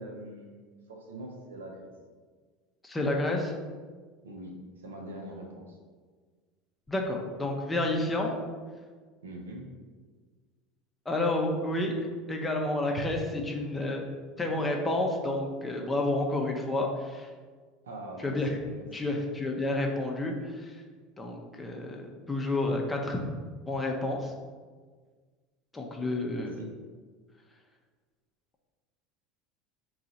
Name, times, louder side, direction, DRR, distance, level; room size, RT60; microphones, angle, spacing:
voice 1, 0.0-1.9 4.2-5.8 9.2-9.7 17.8-19.1 26.3-26.7, right 1 dB, 80° right, 1 dB, 0.6 m, -43 dB
voice 2, 2.8-3.5 6.9-8.4 11.1-11.9 12.3-14.0 14.4-17.3 18.2-18.6 18.9-20.8 21.2-23.3 23.7-24.3 25.7-26.6, left 2 dB, 15° left, 1 dB, 0.7 m, -30 dB
3.8 x 2.4 x 4.0 m, 1.5 s
hypercardioid pair, 75°, 0 cm